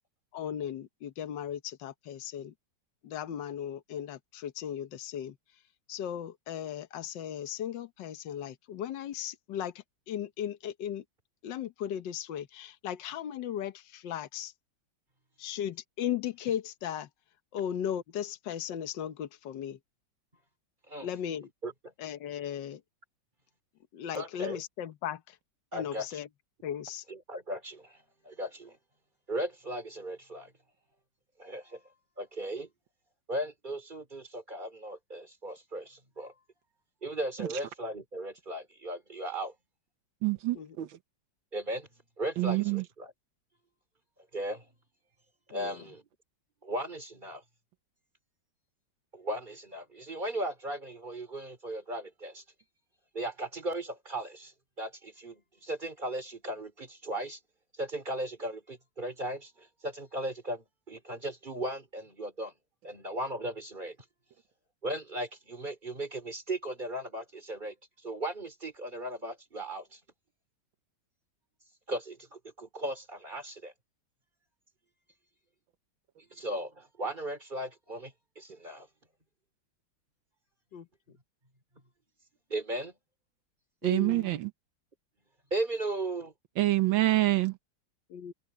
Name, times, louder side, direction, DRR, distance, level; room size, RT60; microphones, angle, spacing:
voice 1, 0.3-2.5 3.0-5.4 5.9-11.0 11.4-14.5 15.4-17.1 17.5-19.8 21.0-21.5 22.0-22.8 23.9-25.4 25.7-26.3 26.6-27.0 40.5-40.8 45.5-45.8 80.7-80.9 83.8-84.4 88.1-88.3, left 10 dB, 70° left, 1.7 m, -37 dB
voice 2, 24.1-24.6 25.7-26.1 27.1-28.0 28.2-28.8 29.3-30.5 31.4-31.8 32.2-32.7 33.3-36.3 37.0-39.5 41.5-41.9 42.2-43.1 44.3-44.7 45.5-46.0 46.6-47.4 49.1-52.4 53.1-54.5 54.8-57.4 57.8-62.5 62.8-64.0 64.8-67.7 68.0-70.0 71.9-73.7 76.3-78.9 82.5-82.9 85.5-86.3, right 1 dB, 25° right, 3.8 m, -37 dB
voice 3, 40.2-41.0 42.4-42.8 83.8-84.5 86.6-87.6, right 17 dB, 90° right, 1.7 m, -26 dB
omnidirectional pair, 2.0 m